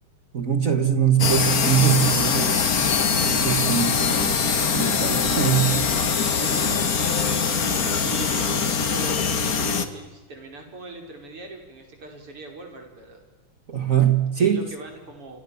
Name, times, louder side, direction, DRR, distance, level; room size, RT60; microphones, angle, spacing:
voice 1, 0.3-4.4 4.7-5.9 13.7-14.7, right 9 dB, 40° right, 8 dB, 2.0 m, -23 dB
sound 1, 1.2-9.9, left 5 dB, 45° left, 1.9 m, -22 dB
voice 2, 6.3-7.2 8.0-8.6 8.9-13.2 14.4-15.4, right 3 dB, 90° right, 3 dB, 6.1 m, -40 dB
28.5 x 26.5 x 7.3 m, 1.1 s
omnidirectional pair, 2.4 m